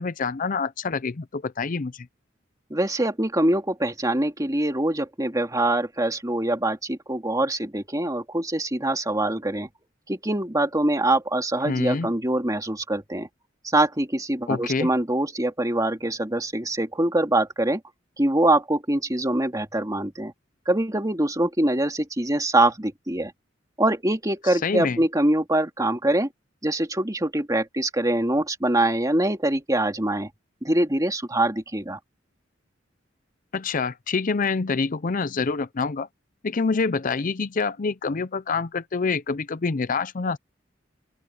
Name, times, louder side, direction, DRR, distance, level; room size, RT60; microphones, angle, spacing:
voice 1, 0.0-2.1 11.6-12.1 14.5-14.9 24.4-25.0 33.5-36.1 36.4-40.4, left 4 dB, 45° left, 0.5 m, -26 dB
voice 2, 2.7-9.7 10.1-13.3 13.6-17.8 18.2-20.3 20.7-23.3 23.8-26.3 26.6-30.3 30.6-32.0, right 1 dB, 20° right, 2.6 m, -24 dB
open air
head